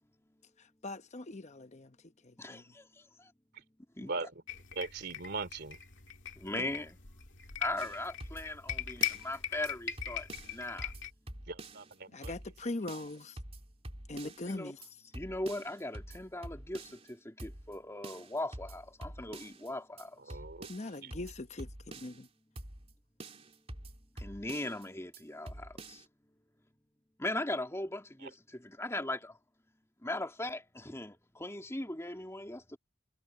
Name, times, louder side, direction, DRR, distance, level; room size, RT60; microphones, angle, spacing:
voice 1, 0.6-2.0 2.2-2.6 12.1-13.4 14.1-14.8 20.7-21.7 22.0-22.1, left 2 dB, 35° left, 0.9 m, -41 dB
voice 2, 2.4-3.3 4.0-4.1 6.4-7.0 7.6-10.9 14.4-14.7 15.1-20.4 24.2-26.0 27.2-29.4 30.0-32.8, left 1 dB, 15° left, 2.7 m, -39 dB
voice 3, 4.0-4.4 4.7-5.8 6.5-6.7 11.5-12.3 20.3-20.7 21.0-21.1 28.2-28.3, right 3 dB, 55° right, 2.8 m, -40 dB
sound 1, 4.5-11.1, left 11 dB, 65° left, 2.4 m, -40 dB
sound 2, 7.8-9.4 9.7-9.8 10.0-11.9 12.2-12.6 12.9-14.5 14.8-14.9 15.1-17.1 17.4-17.8 18.0-19.7 20.0-20.1 20.3-22.3 22.6-22.9 23.2-24.9 25.1-25.2 25.5-26.0, right 1 dB, 30° right, 3.6 m, -47 dB
head